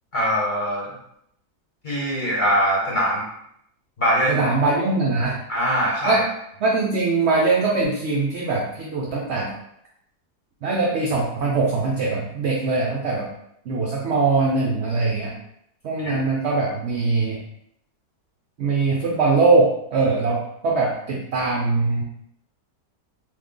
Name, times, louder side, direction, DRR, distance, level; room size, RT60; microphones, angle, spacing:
voice 1, 0.1-0.9 1.8-3.2 4.0-4.4 5.5-6.2 16.0-16.1, equal, 35° left, -5 dB, 0.9 m, -22 dB
voice 2, 4.3-5.4 6.0-6.2 6.6-9.5 10.6-13.3 13.7-15.3 15.8-17.4 18.6-22.0, right 3 dB, 70° right, -2 dB, 0.6 m, -22 dB
3.1 x 2.3 x 3.6 m, 0.74 s
omnidirectional pair, 1.7 m